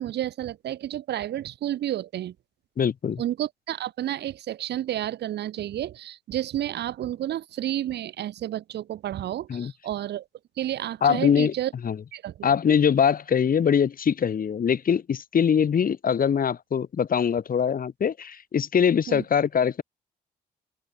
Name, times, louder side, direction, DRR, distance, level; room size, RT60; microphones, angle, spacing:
voice 1, 0.0-2.3 3.2-10.2 10.6-11.7 12.1-12.5 19.1-19.2, right 12 dB, 55° right, 3.6 m, -31 dB
voice 2, 2.8-3.2 9.5-9.7 11.0-11.5 11.8-12.0 12.4-19.8, left 7 dB, 45° left, 5.2 m, -22 dB
figure-of-eight pair, 45°, 20 cm